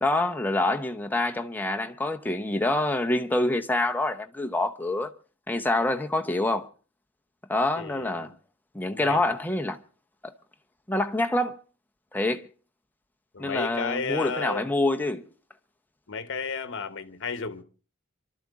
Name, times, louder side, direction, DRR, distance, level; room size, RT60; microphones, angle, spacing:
voice 1, 0.0-5.1 5.5-6.7 7.5-8.3 8.7-9.8 10.2-10.3 10.9-11.6 12.1-12.5 13.4-15.2, left 2 dB, 10° left, 0.8 m, -26 dB
voice 2, 7.8-8.4 8.9-9.3 13.3-14.7 16.1-17.6, left 5 dB, 60° left, 1.1 m, -33 dB
26.5 x 12.5 x 3.6 m
head